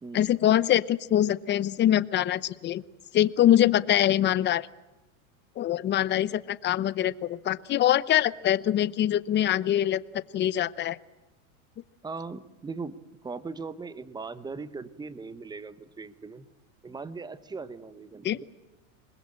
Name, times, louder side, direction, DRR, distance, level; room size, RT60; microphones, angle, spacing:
voice 1, 0.1-2.8 3.1-4.7 5.6-10.0 10.3-11.0 18.2-18.4, left 12 dB, 25° left, 17 dB, 0.8 m, -24 dB
voice 2, 12.0-16.4 16.8-18.4, right 4 dB, 10° right, 14 dB, 1.2 m, -39 dB
27.0 x 21.0 x 8.8 m, 1.0 s
supercardioid pair, 135°, 43 cm